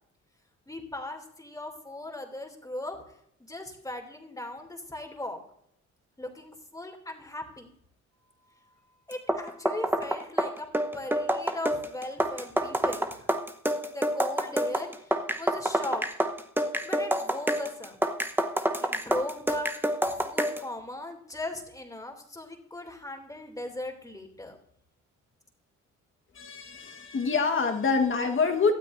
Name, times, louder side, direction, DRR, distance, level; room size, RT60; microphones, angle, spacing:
voice 1, 0.7-3.0 3.4-5.4 6.2-7.7 9.1-10.7 10.9-13.3 13.8-16.1 16.8-18.0 18.8-24.6, left 1 dB, 10° left, 3 dB, 2.7 m, -38 dB
sound 1, 9.1-20.7, right 1 dB, 5° right, 1.0 m, -28 dB
voice 2, 26.3-28.7, left 4 dB, 40° left, 4 dB, 1.5 m, -26 dB
18.0 x 12.5 x 2.6 m, 0.72 s
cardioid pair, 90°, 30 cm